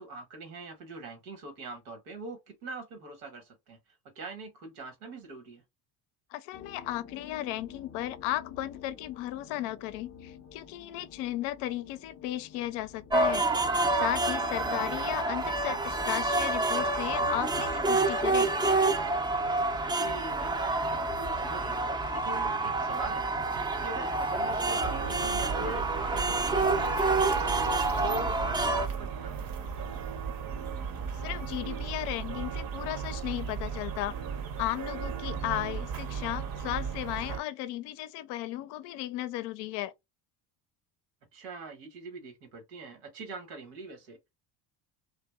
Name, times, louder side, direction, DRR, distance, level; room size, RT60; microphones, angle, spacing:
voice 1, 0.0-3.8 4.1-5.6 14.6-14.9 19.8-23.4 23.8-27.6 27.9-29.5 41.3-44.2, right 2 dB, 80° right, 1.1 m, -43 dB
voice 2, 6.3-13.5 14.0-18.5 31.1-34.1 34.6-39.9, left 14 dB, 65° left, 0.5 m, -35 dB
sound 1, 6.5-25.3, left 7 dB, 25° left, 0.6 m, -53 dB
sound 2, 13.1-28.9, right 2 dB, 10° right, 0.4 m, -28 dB
sound 3, 24.8-37.4, right 6 dB, 50° right, 0.7 m, -36 dB
2.7 x 2.1 x 2.2 m
hypercardioid pair, 70°, 45 cm